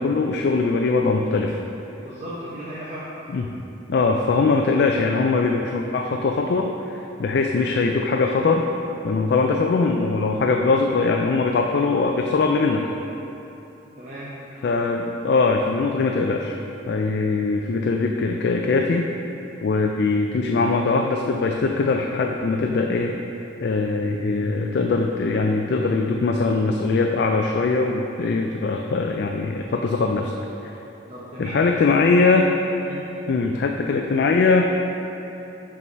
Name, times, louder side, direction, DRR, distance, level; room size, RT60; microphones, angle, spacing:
voice 1, 0.0-1.6 3.3-3.5 3.9-8.6 9.0-12.9 14.6-16.6 16.9-19.1 19.6-23.1 23.6-30.3 31.4-32.5 33.3-34.7, left 3 dB, 55° left, 2 dB, 0.3 m, -21 dB
voice 2, 2.0-3.2 4.1-4.2 14.0-14.4 31.1-31.8 32.8-33.1, equal, 35° right, -9 dB, 0.8 m, -35 dB
5.7 x 4.6 x 5.3 m, 3.0 s
head